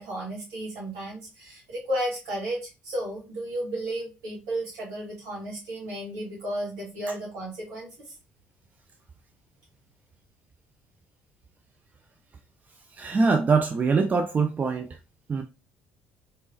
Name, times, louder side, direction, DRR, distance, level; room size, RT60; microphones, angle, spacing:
voice 1, 0.0-2.6 2.8-7.9, right 1 dB, 65° right, 2.5 m, -33 dB
voice 2, 13.0-14.9 15.3-15.4, right 4 dB, 30° right, 0.5 m, -23 dB
4.1 x 3.5 x 2.6 m
figure-of-eight pair, 50°, 6 cm